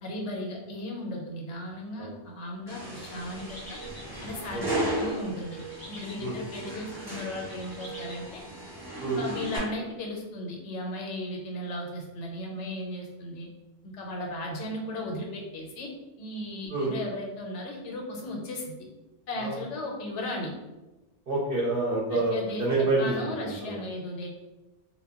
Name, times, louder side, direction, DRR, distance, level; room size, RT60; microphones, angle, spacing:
voice 1, 0.0-3.8 4.2-5.6 5.9-8.4 9.2-13.5 13.8-15.9 16.2-18.7 19.3-20.5 22.1-22.6 23.0-24.3, left 1 dB, 85° left, 0 dB, 0.9 m, -36 dB
sound 1, 2.7-9.6, right 1 dB, 20° right, 0.9 m, -36 dB
sound 2, 3.2-8.3, equal, 25° left, 0.6 m, -48 dB
voice 2, 21.3-23.1 23.4-23.8, right 2 dB, 60° right, -5 dB, 0.7 m, -28 dB
2.1 x 2.1 x 3.5 m, 1.1 s
omnidirectional pair, 1.2 m